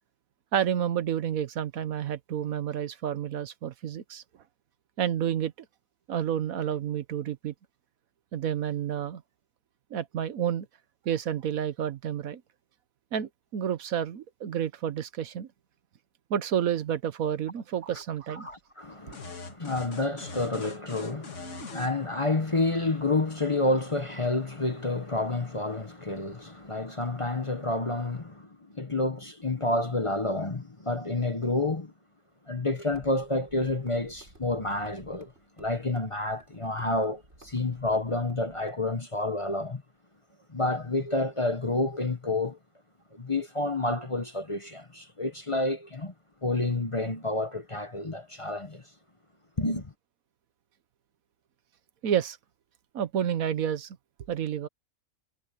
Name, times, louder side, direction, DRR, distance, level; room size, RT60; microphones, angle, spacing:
voice 1, 0.5-4.2 5.0-5.5 6.1-7.5 8.3-9.2 9.9-10.7 11.0-12.4 13.1-15.5 16.3-18.5 52.0-52.4 52.9-54.0 54.3-54.7, right 9 dB, 75° right, 1.4 m, -30 dB
voice 2, 18.4-31.9 32.5-35.3 35.6-39.8 40.5-42.6 43.1-46.1 46.4-48.8 49.6-49.9, left 2 dB, 25° left, 1.0 m, -29 dB
sound 1, 19.1-21.9, left 4 dB, 60° left, 1.9 m, -42 dB
sound 2, 32.9-38.7, right 1 dB, 50° right, 6.6 m, -55 dB
omnidirectional pair, 1.5 m